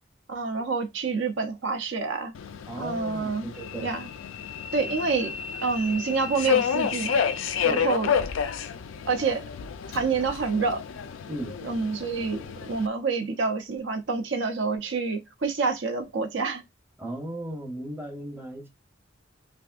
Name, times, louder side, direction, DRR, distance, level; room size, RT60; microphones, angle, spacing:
voice 1, 0.3-2.3 2.7-3.5 3.8-4.1 4.7-5.3 5.6-7.2 7.6-8.1 9.1-9.5 9.9-10.8 11.6-16.6, right 4 dB, 65° right, 0.6 m, -27 dB
Subway metro underground, 2.3-12.9, left 7 dB, 75° left, 0.4 m, -30 dB
voice 2, 2.7-3.9 7.6-7.9 11.3-11.6 17.0-18.7, right 1 dB, 10° right, 0.7 m, -36 dB
3.4 x 2.5 x 2.4 m
head